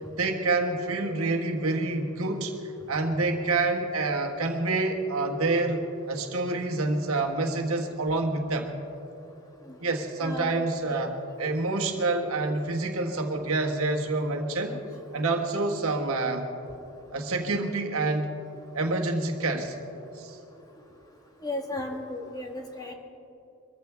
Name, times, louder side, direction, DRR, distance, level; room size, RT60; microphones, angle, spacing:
voice 1, 0.2-2.5 2.9-8.7 9.8-11.1 11.4-14.8 15.1-16.5 17.1-18.3 18.7-19.7 20.2-20.4, right 2 dB, 75° right, 2 dB, 1.5 m, -27 dB
voice 2, 1.0-1.3 6.4-6.6 9.7-9.8 10.2-11.0 14.7-14.8 20.0-20.1 21.4-22.9, left 2 dB, 15° left, 1 dB, 1.4 m, -36 dB
23.5 x 14.5 x 3.5 m, 2.9 s
head